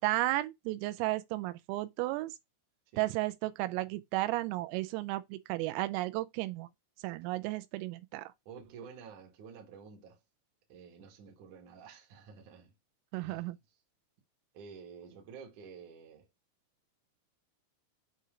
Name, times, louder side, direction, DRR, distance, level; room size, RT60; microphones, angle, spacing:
voice 1, 0.0-2.3 3.0-6.7 7.0-8.3 13.1-13.6, right 17 dB, 90° right, 3.3 m, -33 dB
voice 2, 8.5-10.2 10.7-12.7 13.2-13.5 14.5-16.3, right 6 dB, 65° right, 2.0 m, -50 dB
7.8 x 2.8 x 4.9 m
omnidirectional pair, 5.8 m